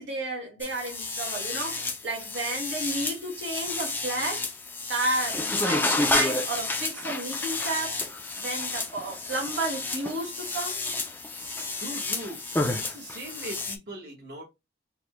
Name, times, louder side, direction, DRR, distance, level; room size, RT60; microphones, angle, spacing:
voice 1, 0.0-4.5 4.9-8.0 8.3-10.8, right 2 dB, 85° right, 1.5 m, -32 dB
sound 1, 0.6-13.8, left 2 dB, 10° left, 0.4 m, -30 dB
voice 2, 11.7-12.4 12.8-14.4, right 1 dB, 60° right, 1.1 m, -39 dB
4.1 x 2.1 x 3.0 m
head